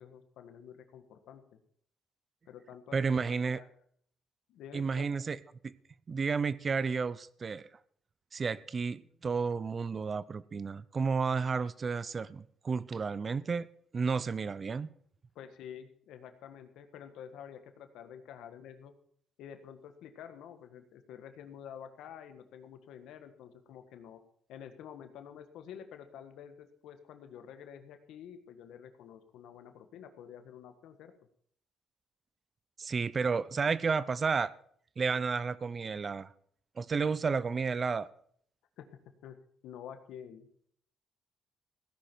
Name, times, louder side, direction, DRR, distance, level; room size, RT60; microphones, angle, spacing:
voice 1, 0.0-1.6 2.5-3.7 4.5-5.1 15.3-18.9 19.4-24.2 24.5-31.1 38.8-38.9 39.2-39.4 39.6-40.5, left 8 dB, 85° left, 1.5 m, -49 dB
voice 2, 2.9-3.6 4.7-5.4 5.6-5.8 6.1-7.7 8.3-13.7 13.9-14.9 32.8-34.5 35.0-36.3 36.8-38.1, right 5 dB, 40° right, 0.6 m, -32 dB
16.5 x 10.5 x 4.5 m
cardioid pair, 90°, 0 cm